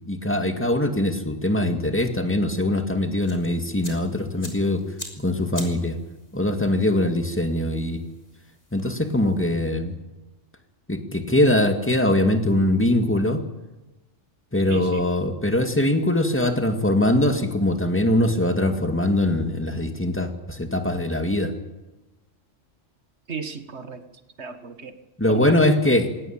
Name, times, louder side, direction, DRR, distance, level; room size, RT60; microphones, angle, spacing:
voice 1, 0.1-4.8 5.2-6.0 6.3-8.0 8.7-10.0 10.9-13.4 14.5-21.5 25.2-26.1, left 1 dB, 10° left, 6 dB, 2.1 m, -22 dB
sound 1, 3.2-9.7, left 1 dB, 30° left, 3.7 m, -45 dB
voice 2, 14.7-15.1 23.3-24.0 24.4-24.9 25.3-25.6, right 5 dB, 60° right, 9 dB, 2.0 m, -35 dB
20.5 x 18.0 x 8.9 m, 1.0 s
omnidirectional pair, 1.3 m